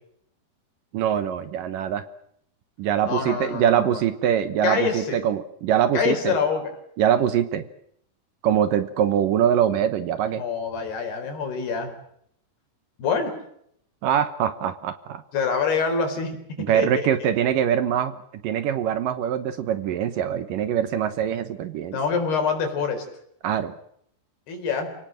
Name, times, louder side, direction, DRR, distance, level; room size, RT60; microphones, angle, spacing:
voice 1, 0.9-2.1 2.8-6.3 7.0-7.7 8.4-10.4 14.0-15.2 16.7-18.1 18.4-22.0 23.4-23.7, right 9 dB, 70° right, 12 dB, 2.4 m, -23 dB
voice 2, 3.0-4.0 4.6-5.2 5.9-6.6 10.4-11.9 13.0-13.3 15.3-16.3 16.7-17.3 21.9-23.1 24.5-24.9, left 5 dB, 75° left, 5 dB, 6.2 m, -25 dB
29.5 x 18.0 x 7.7 m, 0.71 s
omnidirectional pair, 4.6 m